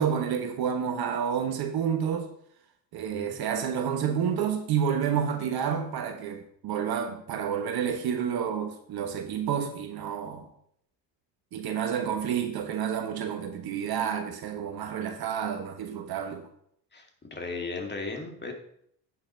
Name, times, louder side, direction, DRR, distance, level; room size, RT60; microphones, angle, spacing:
voice 1, 0.0-2.3 2.9-10.5 11.5-16.5, right 8 dB, 50° right, 1.3 m, -29 dB
voice 2, 16.9-18.5, left 3 dB, 20° left, 2.1 m, -36 dB
8.7 x 5.9 x 4.4 m
hypercardioid pair, 65°, 49 cm